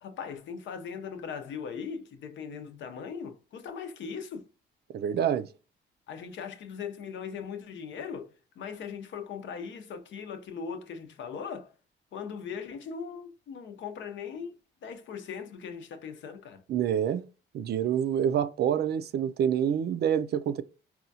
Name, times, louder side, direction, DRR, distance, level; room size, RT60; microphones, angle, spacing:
voice 1, 0.0-4.5 6.1-11.7 12.1-14.6 14.8-16.6, left 6 dB, 70° left, 0.7 m, -39 dB
voice 2, 4.9-5.5 16.7-17.2 17.5-20.6, right 9 dB, 55° right, 0.4 m, -27 dB
4.2 x 2.3 x 2.6 m
cardioid pair, 90°, 20 cm